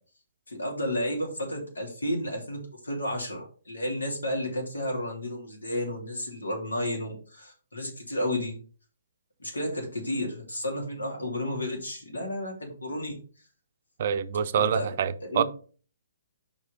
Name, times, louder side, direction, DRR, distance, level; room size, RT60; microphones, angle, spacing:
voice 1, 0.5-8.5 9.4-13.1 14.6-14.9 15.2-15.4, left 1 dB, 75° left, 2.8 m, -32 dB
voice 2, 14.0-15.4, right 8 dB, 50° right, 0.5 m, -26 dB
5.5 x 4.8 x 5.0 m
figure-of-eight pair, 125°, 0 cm